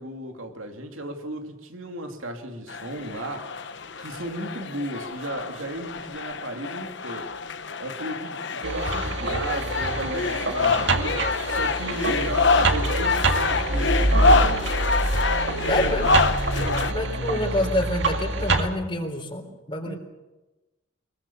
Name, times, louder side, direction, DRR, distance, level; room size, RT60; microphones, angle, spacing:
voice 1, 0.0-3.5 4.0-7.3 7.8-11.2 11.5-14.7 16.5-17.0 19.9-20.0, right 1 dB, 80° right, 2.7 m, -35 dB
sound 1, 2.7-16.9, left 4 dB, 60° left, 1.0 m, -26 dB
sound 2, 8.6-18.7, right 2 dB, 60° right, 2.1 m, -25 dB
voice 2, 15.7-16.0 16.9-20.0, left 1 dB, 25° left, 3.7 m, -27 dB
24.0 x 21.5 x 7.2 m
head